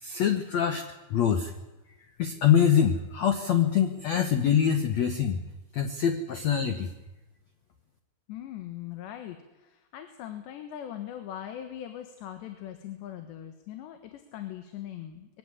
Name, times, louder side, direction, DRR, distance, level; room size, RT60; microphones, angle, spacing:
voice 1, 0.0-0.8 1.1-1.5 2.2-5.4 5.7-6.9, left 8 dB, 75° left, 7 dB, 1.6 m, -24 dB
voice 2, 8.3-15.4, left 11 dB, 90° left, 7 dB, 3.7 m, -40 dB
22.5 x 16.5 x 9.9 m, 1.0 s
omnidirectional pair, 4.9 m